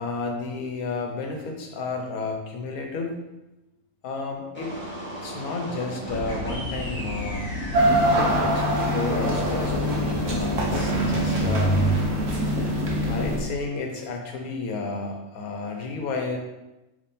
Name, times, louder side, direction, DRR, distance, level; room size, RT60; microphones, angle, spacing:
voice 1, 0.0-3.2 4.0-4.7 5.2-7.5 8.1-11.9 13.0-16.4, left 3 dB, 80° left, 2 dB, 1.2 m, -32 dB
sound 1, 4.5-11.9, right 2 dB, 10° left, 1.3 m, -31 dB
sound 2, 6.1-13.4, left 1 dB, 35° right, 1.2 m, -33 dB
sound 3, 7.7-13.4, equal, 55° right, 1.0 m, -24 dB
3.5 x 3.2 x 4.1 m, 0.99 s
omnidirectional pair, 1.5 m